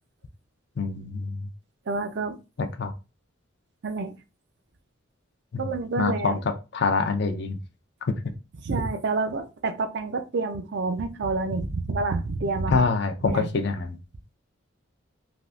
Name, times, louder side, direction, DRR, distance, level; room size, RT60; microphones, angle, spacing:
voice 1, 0.8-1.5 2.8-2.9 5.5-7.6 8.1-8.2 12.7-14.0, left 4 dB, 55° left, 0.4 m, -26 dB
voice 2, 1.9-2.4 3.8-4.1 5.6-6.4 8.6-12.8 13.2-13.6, right 3 dB, 55° right, 0.4 m, -28 dB
3.4 x 2.4 x 2.4 m
head